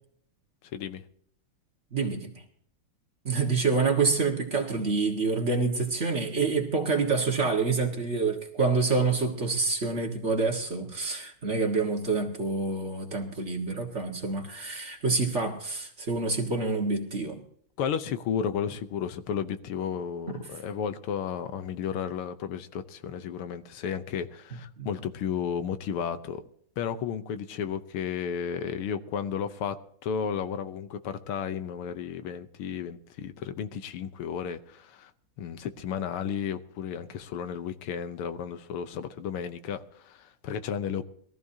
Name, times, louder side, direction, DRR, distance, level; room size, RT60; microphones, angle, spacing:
voice 1, 0.7-1.0 17.8-26.4 26.8-29.8 30.0-35.1 35.4-41.0, left 7 dB, 85° left, 1.8 m, -33 dB
voice 2, 1.9-2.4 3.2-17.4 20.3-20.4 24.8-24.9, right 4 dB, 35° right, 1.9 m, -27 dB
21.5 x 14.5 x 2.8 m
omnidirectional pair, 2.4 m